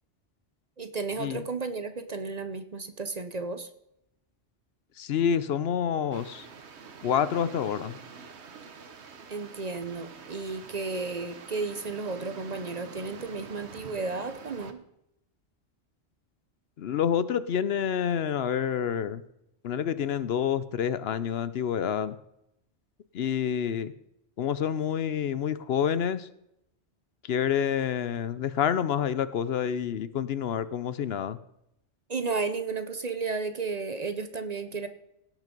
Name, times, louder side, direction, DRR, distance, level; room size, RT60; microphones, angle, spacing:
voice 1, 0.8-3.7 9.3-14.8 32.1-34.9, right 4 dB, 40° right, 9 dB, 0.8 m, -33 dB
voice 2, 5.0-6.5 7.0-8.0 16.8-19.2 19.6-22.2 23.1-23.9 24.4-26.3 27.2-31.4, left 8 dB, 65° left, 15 dB, 0.8 m, -28 dB
sound 1, 6.1-14.7, right 5 dB, 75° right, 1.3 m, -46 dB
17.0 x 6.1 x 5.2 m, 0.81 s
omnidirectional pair, 1.1 m